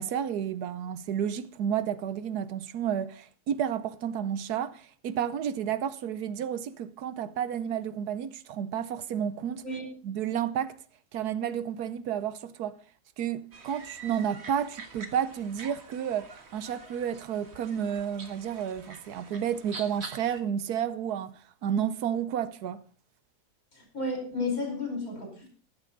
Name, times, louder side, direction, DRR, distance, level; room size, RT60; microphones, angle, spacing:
voice 1, 0.0-9.6 10.0-10.8 11.1-12.8 13.2-22.8, right 9 dB, 80° right, 1.3 m, -31 dB
sound 1, 13.5-20.4, right 4 dB, 45° right, 1.7 m, -46 dB
voice 2, 23.7-25.5, left 3 dB, 65° left, 5.6 m, -32 dB
13.5 x 11.5 x 3.9 m
omnidirectional pair, 1.7 m